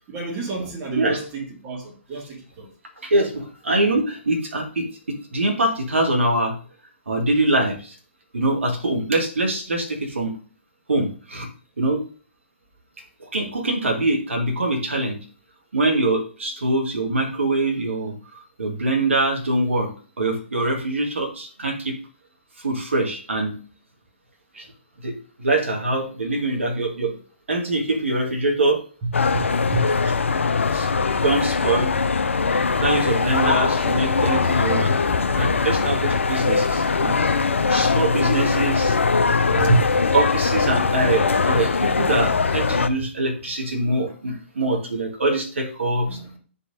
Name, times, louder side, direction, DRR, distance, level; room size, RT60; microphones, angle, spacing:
voice 1, 0.1-2.7 29.0-29.9 39.5-40.1 43.0-43.1 46.1-46.3, right 3 dB, 30° right, 1.8 m, -27 dB
voice 2, 3.0-6.5 7.1-7.9 8.3-10.3 10.9-11.5 11.8-12.0 13.3-15.2 15.7-18.1 18.6-19.9 20.2-22.0 22.6-23.6 24.5-24.7 25.0-25.1 25.4-27.1 27.5-28.8 30.7-31.9 32.7-34.9 35.4-37.2 37.7-39.0 40.1-46.2, right 2 dB, 70° right, 1.6 m, -23 dB
sound 1, 29.1-42.9, left 4 dB, 75° left, 0.5 m, -21 dB
9.8 x 4.1 x 2.5 m
figure-of-eight pair, 130°, 7 cm